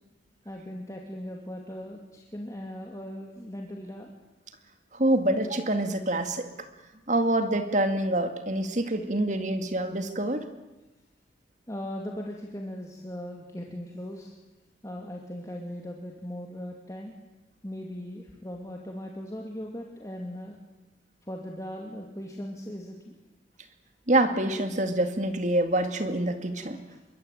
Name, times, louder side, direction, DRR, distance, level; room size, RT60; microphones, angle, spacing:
voice 1, 0.4-4.1 11.7-14.3 14.8-17.1 17.6-20.6 21.3-23.1 26.7-27.0, equal, 15° left, 0 dB, 2.6 m, -39 dB
voice 2, 4.9-6.5 7.1-10.5 24.1-26.8, right 1 dB, 40° right, 7 dB, 2.2 m, -26 dB
26.5 x 23.5 x 9.2 m, 1.1 s
head